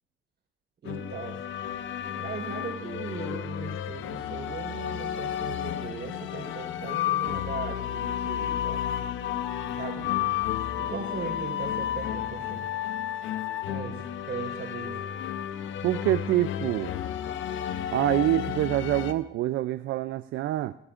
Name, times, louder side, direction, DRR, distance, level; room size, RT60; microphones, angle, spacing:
voice 1, 0.8-1.4 2.1-8.8 9.8-10.1 10.7-12.7 13.6-15.0, right 5 dB, 55° right, 1 dB, 4.1 m, -38 dB
sound 1, 0.9-19.1, left 10 dB, 80° left, 0.7 m, -32 dB
voice 2, 15.8-16.9 17.9-20.8, right 14 dB, 75° right, 13 dB, 0.4 m, -26 dB
25.5 x 12.5 x 2.5 m, 0.81 s
cardioid pair, 90°, 20 cm